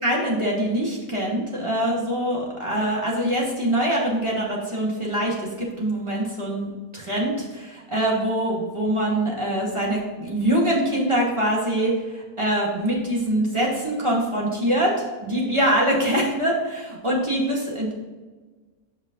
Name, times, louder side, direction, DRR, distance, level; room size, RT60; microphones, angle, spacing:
voice 1, 0.0-17.9, right 1 dB, 20° right, -4 dB, 2.2 m, -24 dB
8.4 x 5.5 x 3.9 m, 1.3 s
omnidirectional pair, 1.6 m